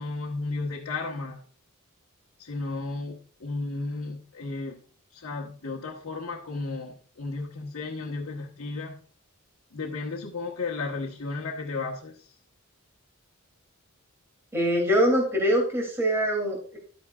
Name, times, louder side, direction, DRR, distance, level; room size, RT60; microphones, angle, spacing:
voice 1, 0.0-1.4 2.4-4.8 5.1-9.0 9.7-12.3, left 3 dB, 70° left, -2 dB, 1.2 m, -34 dB
voice 2, 14.5-16.8, equal, 10° right, -1 dB, 2.7 m, -23 dB
11.5 x 9.3 x 2.4 m, 0.42 s
head